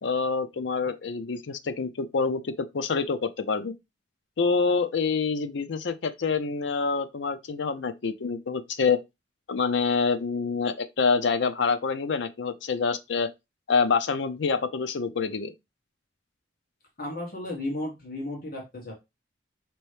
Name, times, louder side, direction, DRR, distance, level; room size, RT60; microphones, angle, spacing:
voice 1, 0.0-3.7 4.4-9.0 9.5-13.3 13.7-15.5, left 5 dB, 70° left, 0.5 m, -26 dB
voice 2, 17.0-18.9, left 1 dB, 50° left, 1.4 m, -34 dB
5.3 x 3.0 x 3.3 m
head